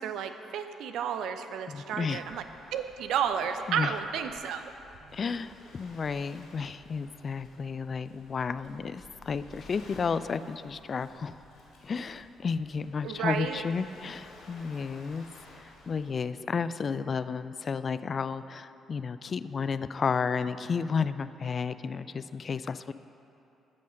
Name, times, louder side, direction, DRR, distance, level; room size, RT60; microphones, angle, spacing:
voice 1, 0.0-2.4 2.7-4.6 5.0-5.2 13.0-13.6, right 8 dB, 65° right, 8 dB, 0.7 m, -32 dB
voice 2, 1.7-2.2 3.7-3.9 5.1-11.3 11.8-15.3 15.5-22.9, left 5 dB, 45° left, 14 dB, 0.4 m, -32 dB
Waves surf, 2.1-16.1, left 2 dB, 65° left, 3.2 m, -54 dB
13.5 x 8.4 x 5.3 m, 2.9 s
hypercardioid pair, 45°, 0 cm